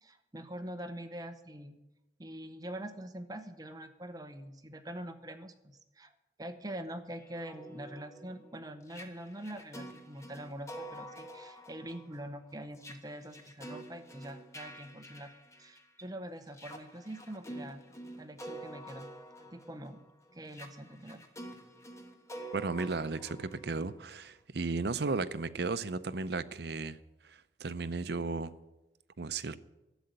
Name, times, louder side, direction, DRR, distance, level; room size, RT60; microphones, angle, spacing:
voice 1, 0.0-1.8 2.2-6.1 6.4-15.3 15.6-17.8 18.2-19.1 19.4-20.0 20.3-21.2, right 1 dB, 20° right, 0.8 m, -44 dB
sound 1, 7.2-16.0 16.5-24.3, right 1 dB, 15° left, 1.3 m, -48 dB
voice 2, 22.5-27.0 27.2-28.5 29.2-29.6, right 3 dB, 65° right, 0.6 m, -35 dB
12.5 x 7.8 x 9.4 m
head